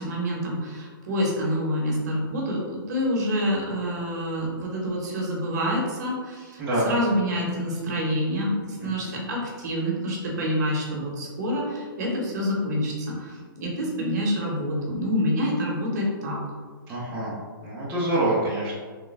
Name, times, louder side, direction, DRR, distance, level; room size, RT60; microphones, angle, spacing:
voice 1, 0.0-16.4, equal, 50° right, -3 dB, 0.9 m, -27 dB
voice 2, 8.8-9.2 16.9-17.3 17.6-18.8, right 1 dB, 10° right, -9 dB, 0.6 m, -26 dB
3.3 x 2.2 x 3.2 m, 1.5 s
hypercardioid pair, 160°, 12 cm